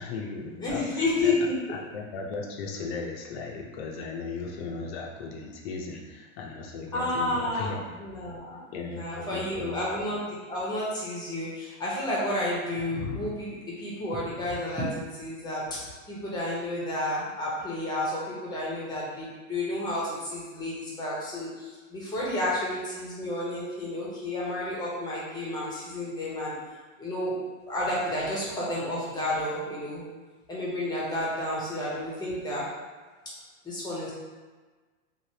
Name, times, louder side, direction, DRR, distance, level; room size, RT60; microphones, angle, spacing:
voice 1, 0.0-0.9 1.2-1.3 1.7-7.9 8.7-9.8, left 4 dB, 50° left, 0 dB, 0.7 m, -36 dB
voice 2, 0.6-1.5 6.9-8.6 8.9-15.8 16.1-26.5 27.0-27.4 27.7-30.0 30.5-32.6 33.6-34.1, left 1 dB, 10° left, -7 dB, 0.8 m, -31 dB
3.2 x 2.5 x 2.8 m, 1.3 s
supercardioid pair, 135°, 39 cm